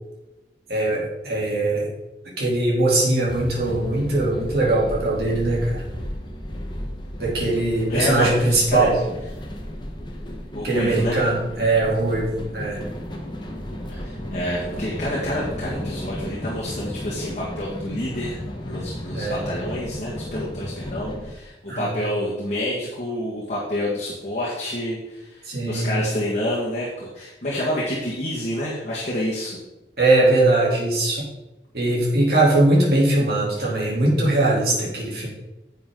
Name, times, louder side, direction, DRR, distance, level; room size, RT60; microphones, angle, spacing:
voice 1, 0.7-1.9 2.4-5.8 7.2-8.9 10.6-12.8 19.1-19.4 21.7-21.9 25.5-26.0 30.0-31.2 31.7-35.3, right 2 dB, 60° right, -4 dB, 3.3 m, -21 dB
sound 1, 3.3-21.3, equal, 25° left, 1.2 m, -34 dB
voice 2, 7.9-8.9 10.5-11.2 13.9-18.4 18.6-29.6, left 1 dB, 40° left, -6 dB, 1.9 m, -28 dB
10.5 x 7.3 x 3.9 m, 1.0 s
head